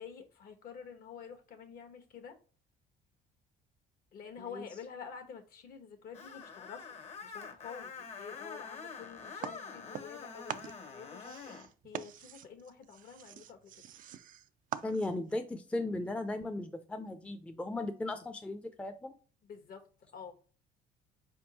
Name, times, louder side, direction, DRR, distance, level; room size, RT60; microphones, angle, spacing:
voice 1, 0.0-2.3 4.1-6.9 7.2-7.9 8.2-11.6 11.8-13.6 19.4-19.8 20.1-20.3, left 6 dB, 60° left, 5 dB, 1.2 m, -48 dB
Screech, 6.1-11.7, left 5 dB, 40° left, 0.9 m, -46 dB
sound 1, 9.4-10.2 10.5-15.3, right 11 dB, 55° right, 0.4 m, -44 dB
voice 2, 14.8-19.2, left 2 dB, 5° left, 6 dB, 0.5 m, -37 dB
4.5 x 3.6 x 2.8 m, 0.40 s
cardioid pair, 110°, 17 cm